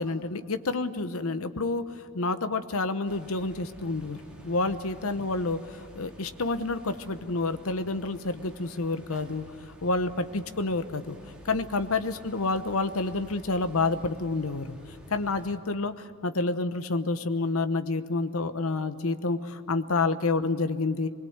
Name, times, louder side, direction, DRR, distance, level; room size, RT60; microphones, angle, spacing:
voice 1, 0.0-1.8 2.1-4.2 4.4-9.4 9.8-11.2 11.5-14.7 15.1-15.9 16.2-21.1, left 3 dB, 70° left, 10 dB, 1.0 m, -28 dB
sound 1, 3.0-15.6, equal, 5° right, 3.5 m, -51 dB
24.0 x 22.0 x 8.0 m, 2.4 s
head